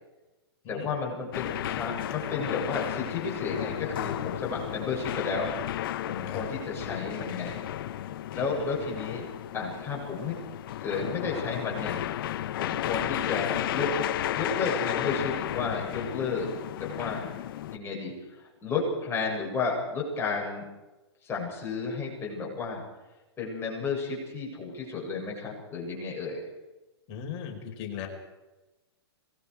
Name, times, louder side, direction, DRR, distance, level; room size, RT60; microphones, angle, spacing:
voice 1, 0.7-5.5 6.0-7.6 8.3-9.3 9.5-10.4 10.8-12.0 12.6-14.0 14.3-16.5 16.8-17.3 17.7-20.7 21.2-22.8 23.4-26.4, left 4 dB, 15° left, -3 dB, 7.8 m, -32 dB
sound 1, 1.3-17.8, left 12 dB, 55° left, 1.1 m, -33 dB
voice 2, 27.1-28.1, left 8 dB, 40° left, 2 dB, 4.9 m, -38 dB
26.5 x 20.5 x 4.9 m, 1.1 s
hypercardioid pair, 130°, 14 cm